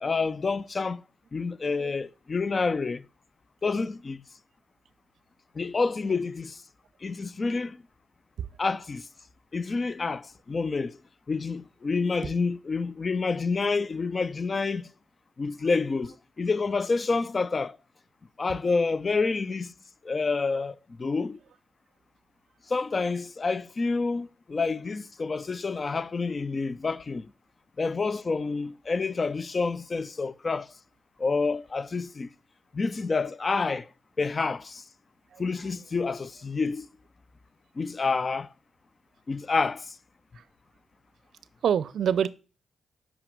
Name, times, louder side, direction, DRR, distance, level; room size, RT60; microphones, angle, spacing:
voice 1, 0.0-1.0 1.3-3.1 3.6-4.2 5.5-6.6 7.0-7.8 8.6-9.1 9.5-11.0 11.3-14.9 15.4-17.8 18.4-19.7 20.0-21.4 22.7-27.3 27.8-30.7 31.2-32.3 32.7-33.9 34.2-34.8 35.4-36.9 37.8-38.5 39.3-40.0, left 4 dB, 35° left, 0.4 m, -28 dB
voice 2, 41.6-42.3, right 8 dB, 70° right, 0.4 m, -26 dB
5.8 x 4.9 x 5.2 m
cardioid pair, 80°, 0 cm